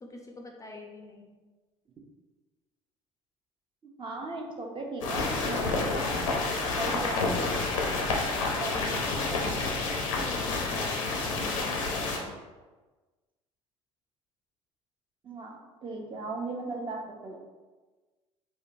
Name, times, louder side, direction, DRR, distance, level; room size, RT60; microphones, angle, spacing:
voice 1, 0.0-1.3 10.2-12.3, left 2 dB, 20° left, 1 dB, 0.4 m, -46 dB
voice 2, 4.0-5.9 6.5-7.5 8.6-9.0 9.3-10.0 11.6-11.8 15.2-17.4, right 2 dB, 30° right, 1 dB, 0.6 m, -37 dB
sound 1, 5.0-12.2, left 3 dB, 85° left, 0.6 m, -29 dB
3.7 x 2.2 x 2.6 m, 1.3 s
hypercardioid pair, 60°, 16 cm